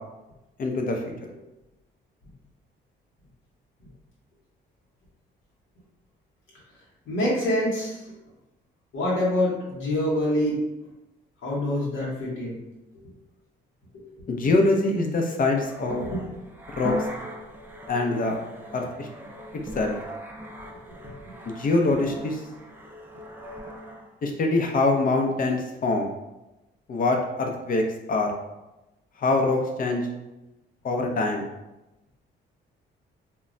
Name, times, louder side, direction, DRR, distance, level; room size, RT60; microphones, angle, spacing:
voice 1, 0.6-1.0 14.3-16.0 16.7-17.1 17.9-18.4 18.7-19.1 19.7-19.9 21.4-22.4 24.2-26.1 26.9-27.8 28.1-28.3 29.2-30.1 30.8-31.5, left 2 dB, 45° left, 2 dB, 0.5 m, -24 dB
voice 2, 7.1-8.0 8.9-10.6 11.4-12.6 14.1-14.6 16.0-16.2, left 1 dB, 80° left, -6 dB, 0.9 m, -26 dB
sound 1, 15.6-24.1, equal, 10° right, 0.4 m, -39 dB
2.2 x 2.1 x 3.7 m, 0.99 s
cardioid pair, 90°, 20 cm